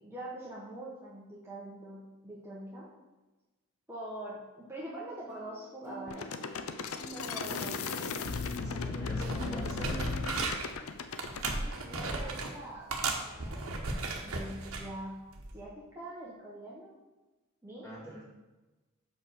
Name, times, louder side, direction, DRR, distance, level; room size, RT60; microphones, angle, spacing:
voice 1, 0.0-2.9 3.9-6.3 7.1-7.8 8.6-10.0 11.6-15.2 15.5-16.9 17.6-18.0, right 1 dB, 10° right, -7 dB, 1.2 m, -44 dB
sound 1, 5.3-10.4, equal, 85° left, 1.3 m, -48 dB
sound 2, 6.1-11.6, left 4 dB, 70° left, 0.5 m, -36 dB
voice 2, 8.6-10.0 17.8-18.2, equal, 15° left, -6 dB, 2.1 m, -44 dB
sound 3, 8.8-8.9 9.2-10.7 11.2-12.5 12.9-14.9 15.4-15.6, right 3 dB, 70° right, 1.1 m, -35 dB
5.4 x 5.3 x 6.3 m, 1.1 s
head